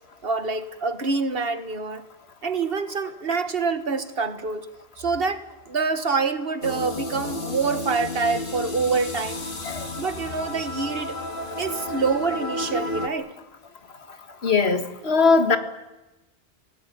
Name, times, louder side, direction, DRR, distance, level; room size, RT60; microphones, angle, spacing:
voice 1, 0.2-2.0 2.4-4.7 5.0-9.4 10.0-11.2 11.6-13.3, right 4 dB, 65° right, 10 dB, 1.6 m, -26 dB
sound 1, 6.6-13.1, left 1 dB, 55° left, 1.9 m, -32 dB
voice 2, 14.4-15.6, left 4 dB, 85° left, 8 dB, 1.9 m, -20 dB
28.0 x 17.5 x 9.3 m, 1.0 s
omnidirectional pair, 1.0 m